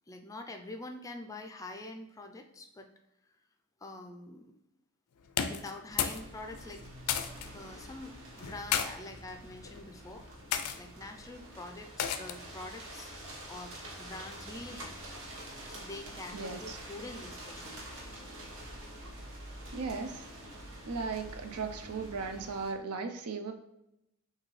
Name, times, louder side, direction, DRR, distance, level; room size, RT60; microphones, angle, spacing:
voice 1, 0.1-2.9 3.8-4.5 5.4-6.8 7.5-8.1 8.4-10.2 10.8-13.1 13.5-13.7 14.0-15.0 15.6-17.9, left 2 dB, 15° left, 4 dB, 0.3 m, -45 dB
sound 1, 5.3-6.3 6.5-7.5 8.4-8.9 9.6-9.9 10.5-10.8 12.0-12.5, left 8 dB, 85° left, 0.4 m, -32 dB
sound 2, 5.9-22.7, right 1 dB, 60° right, 1.3 m, -47 dB
voice 2, 16.3-16.8 19.7-20.3 20.9-23.5, right 4 dB, 80° right, 7 dB, 0.5 m, -37 dB
6.3 x 2.7 x 3.1 m, 0.86 s
head